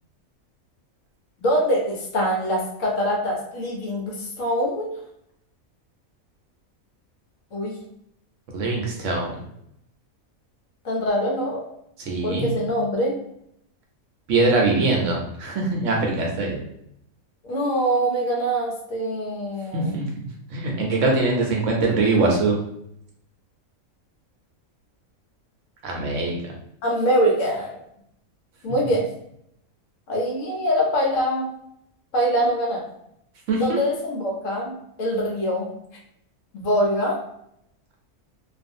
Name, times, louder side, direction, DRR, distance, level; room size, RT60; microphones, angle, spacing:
voice 1, 1.4-4.9 7.5-7.8 10.8-11.6 12.2-13.1 17.4-20.0 26.8-27.8 28.6-29.1 30.1-31.5 32.1-32.8 33.6-35.7 36.5-37.2, equal, 65° left, -2 dB, 1.0 m, -24 dB
voice 2, 8.5-9.3 12.0-12.5 14.3-16.6 19.7-22.5 25.8-26.5 33.5-33.8, right 3 dB, 65° right, -1 dB, 0.9 m, -23 dB
2.5 x 2.4 x 2.5 m, 0.75 s
omnidirectional pair, 1.5 m